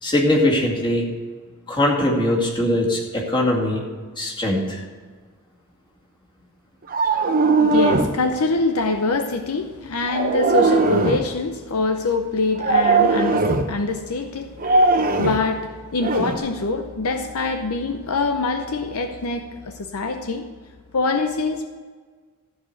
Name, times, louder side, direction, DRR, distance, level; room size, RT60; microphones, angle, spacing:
voice 1, 0.0-1.1 1.7-3.8 4.2-4.8, left 1 dB, 20° left, -3 dB, 2.3 m, -21 dB
sound 1, 6.9-8.2 10.0-11.3 12.6-13.7 14.6-15.5 16.0-16.4, right 3 dB, 40° right, 0.8 m, -19 dB
voice 2, 7.5-20.5 20.9-21.7, left 3 dB, 70° left, 6 dB, 0.7 m, -25 dB
14.0 x 4.9 x 7.9 m, 1.5 s
head